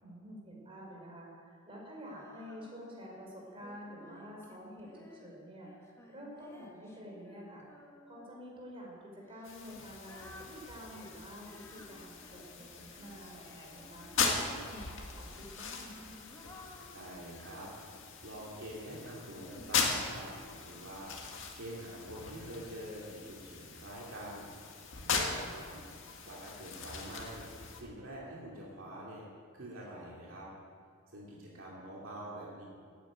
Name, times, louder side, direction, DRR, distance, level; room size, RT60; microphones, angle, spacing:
voice 1, 0.0-5.7 6.1-7.7 8.0-16.1 25.0-25.2, equal, 25° right, -2 dB, 4.4 m, -49 dB
Female singing, 2.0-3.1 3.6-8.4 9.2-14.8 15.5-18.7 19.3-20.5, left 1 dB, 10° left, 1.6 m, -56 dB
sound 1, 9.4-27.8, left 5 dB, 60° left, 2.1 m, -39 dB
voice 2, 16.9-20.3 20.6-21.1 21.6-24.5 25.1-25.8 26.2-27.5 27.7-29.2 29.5-30.5 31.1-32.7, right 1 dB, 60° right, -4 dB, 2.8 m, -46 dB
17.0 x 9.3 x 8.8 m, 2.2 s
head